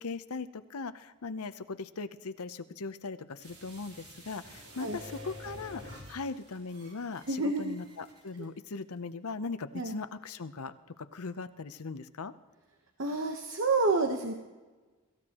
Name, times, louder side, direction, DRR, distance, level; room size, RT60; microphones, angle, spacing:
voice 1, 0.0-12.3, left 4 dB, 85° left, 12 dB, 0.7 m, -39 dB
sound 1, 3.4-8.4 8.8-8.9, left 1 dB, 85° right, 3.7 m, -49 dB
voice 2, 7.3-7.8 9.7-9.9 13.0-14.3, right 3 dB, 60° right, 3 dB, 1.1 m, -29 dB
23.5 x 14.5 x 3.0 m, 1.3 s
head